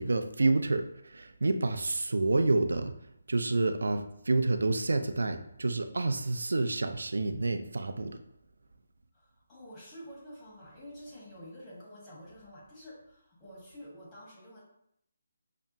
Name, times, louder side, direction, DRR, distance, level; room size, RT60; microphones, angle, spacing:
voice 1, 0.0-2.9 3.3-8.2, right 2 dB, 75° right, 8 dB, 0.4 m, -28 dB
voice 2, 9.1-14.6, equal, 20° left, -6 dB, 1.5 m, -49 dB
5.9 x 2.1 x 2.8 m, 0.76 s
figure-of-eight pair, 150°, 0 cm